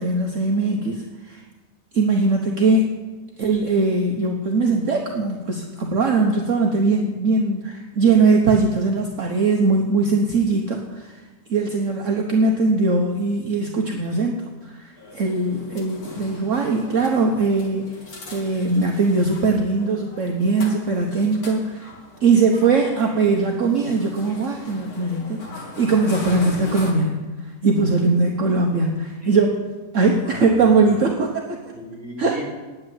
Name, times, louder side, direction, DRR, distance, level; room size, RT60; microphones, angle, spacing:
voice 1, 0.0-1.4 1.9-3.0 3.4-18.0 18.3-21.9 22.2-25.4 25.8-29.6 29.9-31.6 32.2-32.4, right 3 dB, 55° right, 2 dB, 1.3 m, -20 dB
sound 1, 15.0-26.9, left 2 dB, 60° left, 2.5 m, -39 dB
voice 2, 30.2-31.1 31.7-32.4, equal, 5° right, -5 dB, 3.6 m, -38 dB
9.0 x 8.7 x 9.4 m, 1.3 s
omnidirectional pair, 1.7 m